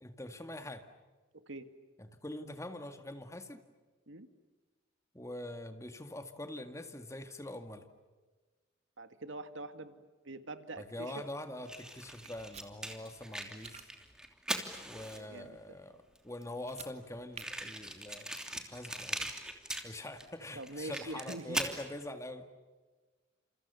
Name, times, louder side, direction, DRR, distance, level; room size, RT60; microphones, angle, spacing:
voice 1, 0.0-0.9 2.0-3.6 5.1-7.9 10.8-13.9 14.9-16.0 16.2-18.3 18.7-19.3 19.8-22.5, left 1 dB, 15° left, 7 dB, 2.0 m, -44 dB
voice 2, 1.3-1.7 4.1-4.3 9.0-11.3 15.2-15.8 20.6-21.6, right 2 dB, 80° right, 9 dB, 2.1 m, -44 dB
Fire, 11.7-15.5 16.2-16.3 16.4-16.5 16.7-16.8 17.4-20.3 20.6-21.8, right 1 dB, 5° right, 3.0 m, -40 dB
sound 1, 12.2-12.7 13.4-13.9 16.6-16.9 17.3-17.5, right 7 dB, 35° right, 2.4 m, -49 dB
30.0 x 28.5 x 7.0 m, 1.3 s
head